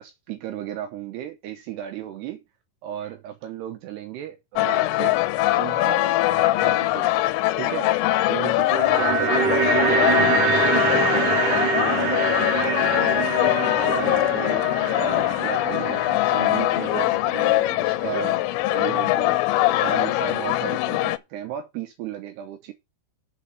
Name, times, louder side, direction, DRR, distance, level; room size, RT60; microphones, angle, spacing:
voice 1, 0.0-2.4 2.8-5.3 5.5-7.2 7.6-7.9 8.3-14.7 15.0-18.4 18.7-22.7, right 11 dB, 85° right, 2.3 m, -35 dB
sound 1, 4.6-21.2, left 17 dB, 85° left, 3.2 m, -22 dB
sound 2, 8.4-18.7 19.0-19.1, right 6 dB, 60° right, 2.3 m, -26 dB
6.9 x 5.9 x 7.6 m
omnidirectional pair, 5.9 m